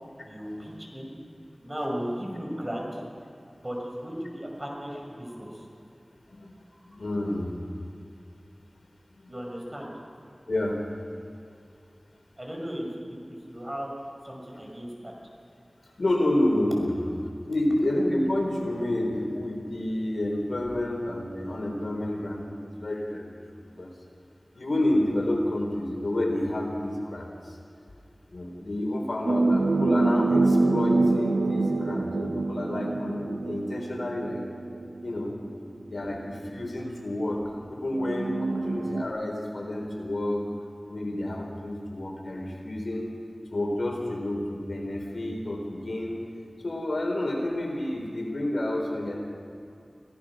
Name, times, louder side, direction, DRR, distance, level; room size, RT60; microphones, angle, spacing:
voice 1, 0.3-1.1 1.6-3.0 3.6-5.7 9.3-10.0 12.4-13.9 14.2-15.1, equal, 25° right, -1 dB, 5.8 m, -36 dB
voice 2, 6.9-7.5 9.2-9.3 10.5-10.8 16.0-17.1 17.5-23.3 23.8-23.9 24.5-27.6 28.3-34.5 35.0-35.3 35.9-40.5 40.9-43.1 43.5-46.2 46.6-49.2, left 1 dB, 80° left, 1 dB, 3.8 m, -29 dB
sound 1, 29.3-35.1 36.1-36.2 38.0-39.1, right 3 dB, 90° right, 0.7 m, -25 dB
25.0 x 17.0 x 6.2 m, 2.5 s
wide cardioid pair, 65°, 0 cm